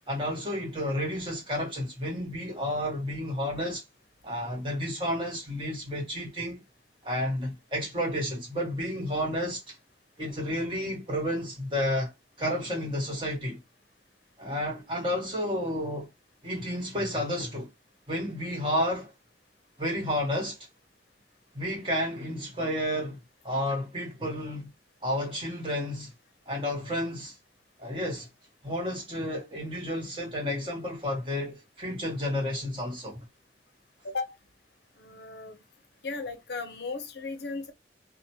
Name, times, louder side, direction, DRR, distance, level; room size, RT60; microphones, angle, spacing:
voice 1, 0.1-3.8 4.2-6.6 7.0-9.8 10.2-12.1 12.4-13.6 14.4-16.1 16.4-17.7 18.1-19.0 19.8-20.6 21.5-23.2 23.4-24.7 25.0-26.1 26.5-27.3 27.8-28.3 28.6-33.2, equal, 30° right, 1.3 m, -31 dB
voice 2, 35.0-35.6 36.0-37.7, left 3 dB, 65° left, 0.6 m, -36 dB
2.9 x 2.1 x 2.9 m
head